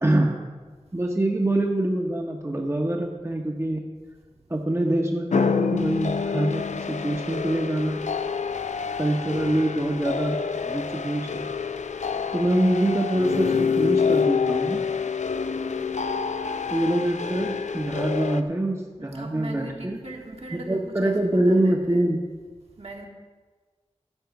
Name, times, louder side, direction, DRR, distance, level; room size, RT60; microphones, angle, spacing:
voice 1, 0.0-0.4 0.9-3.8 4.5-8.0 9.0-11.5 12.3-14.8 16.7-20.0 20.5-22.2, right 1 dB, 25° right, 1 dB, 0.9 m, -25 dB
sound 1, 5.3-18.4, left 6 dB, 90° left, 0.4 m, -27 dB
voice 2, 19.0-22.0 22.8-23.1, right 2 dB, 60° right, 0 dB, 1.6 m, -40 dB
12.0 x 4.3 x 7.9 m, 1.4 s
wide cardioid pair, 55°, 12 cm